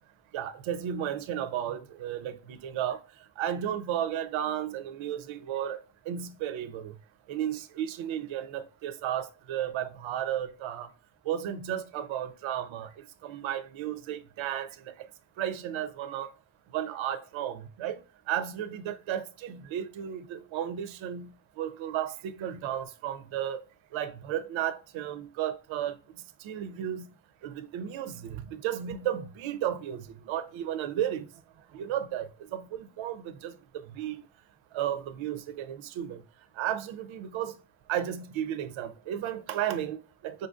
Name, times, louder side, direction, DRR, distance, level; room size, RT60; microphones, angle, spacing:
voice 1, 0.3-3.0 3.4-5.8 6.1-6.9 7.3-10.9 11.3-15.1 15.4-16.3 16.7-18.0 18.3-21.3 21.6-23.6 23.9-26.0 26.4-27.0 27.4-31.3 31.7-33.5 33.9-34.2 34.7-36.2 36.6-37.5 37.9-40.5, right 10 dB, 70° right, 0.5 m, -33 dB
4.4 x 2.5 x 2.3 m
supercardioid pair, 50°, 50 cm